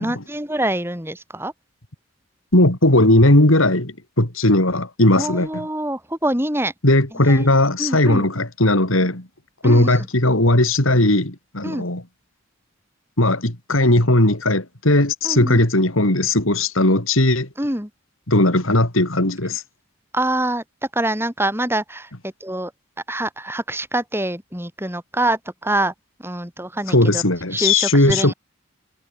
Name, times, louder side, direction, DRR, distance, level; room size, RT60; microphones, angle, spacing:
voice 1, 0.0-1.5 5.2-6.7 7.3-7.5 7.8-8.3 9.6-10.1 11.6-11.9 15.2-15.6 17.6-17.9 20.1-20.6 20.9-22.1 22.4-22.7 23.1-25.9 26.2-27.2 27.5-28.3, right 1 dB, 10° right, 7.2 m, -25 dB
voice 2, 2.5-5.7 6.8-9.3 9.6-12.0 13.2-17.5 18.3-19.6 26.9-28.3, left 1 dB, 75° left, 3.9 m, -17 dB
head